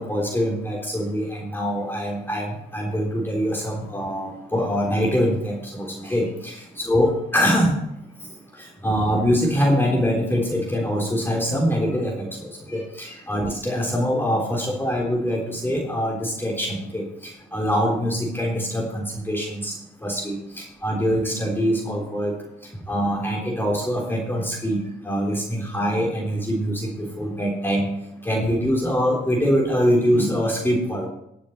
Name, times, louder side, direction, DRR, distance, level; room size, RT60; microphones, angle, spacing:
voice 1, 0.0-7.8 8.8-17.0 17.5-19.7 20.0-22.4 22.9-27.9 28.2-31.1, equal, 10° left, -2 dB, 3.5 m, -24 dB
20.5 x 7.1 x 4.3 m, 0.81 s
cardioid pair, 90°, 20 cm